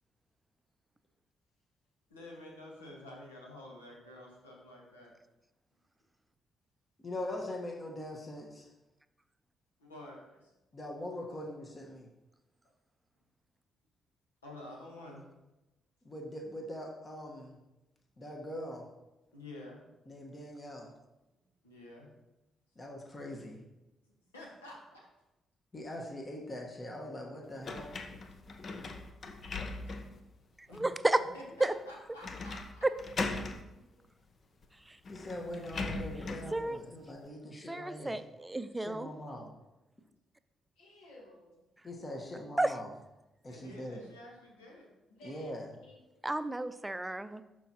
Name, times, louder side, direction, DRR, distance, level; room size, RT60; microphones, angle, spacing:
voice 1, 2.1-5.1 9.8-10.5 14.4-15.2 19.3-19.8 21.6-22.1 24.3-25.1 28.3-28.5 29.7-29.9 30.7-30.8 31.3-32.8 43.5-44.9, left 1 dB, 90° left, -2 dB, 1.4 m, -50 dB
voice 2, 7.0-8.7 10.7-12.1 16.0-17.6 18.2-18.9 20.1-20.9 22.7-23.6 25.7-28.0 35.1-38.2 38.8-39.5 41.8-42.9 43.4-44.1 45.2-45.7, left 1 dB, 35° left, 0 dB, 1.3 m, -42 dB
sound 1, 27.6-30.2 30.7-30.8 32.2-32.7 33.0-33.6 34.6-34.7 35.0-36.5, left 3 dB, 50° left, 0.7 m, -39 dB
voice 3, 30.8-31.2 31.6-31.7 36.5-36.8 37.7-39.1 42.6-42.7 46.2-47.4, right 2 dB, 15° right, 12 dB, 0.5 m, -31 dB
voice 4, 33.7-34.1 37.4-37.6 40.8-41.6 45.1-45.5 45.8-46.0, left 1 dB, 75° left, -1 dB, 1.9 m, -56 dB
12.0 x 4.6 x 2.9 m, 0.98 s
hypercardioid pair, 40°, 0 cm